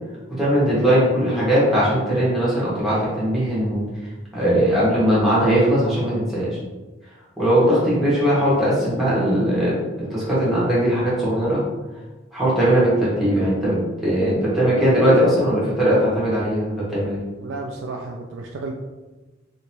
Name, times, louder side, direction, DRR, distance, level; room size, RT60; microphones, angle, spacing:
voice 1, 0.4-3.8 4.3-6.5 7.4-9.8 10.1-11.6 12.3-17.2, equal, ahead, -9 dB, 1.3 m, -19 dB
voice 2, 17.4-18.8, right 3 dB, 70° right, 1 dB, 0.3 m, -32 dB
3.2 x 2.9 x 3.0 m, 1.2 s
head